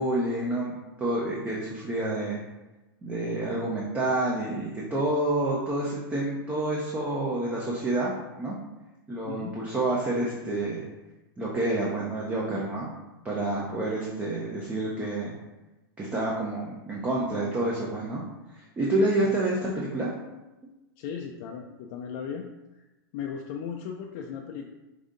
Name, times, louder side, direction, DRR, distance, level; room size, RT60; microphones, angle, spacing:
voice 1, 0.0-2.4 3.0-8.1 8.4-8.6 9.1-10.8 11.4-12.9 13.2-15.3 16.0-18.2 18.5-20.1, right 1 dB, 10° right, -4 dB, 0.6 m, -28 dB
voice 2, 21.0-22.5 22.7-22.8 23.1-24.7, left 7 dB, 45° left, 1 dB, 0.4 m, -36 dB
5.0 x 2.7 x 3.7 m, 1.0 s
supercardioid pair, 155°, 12 cm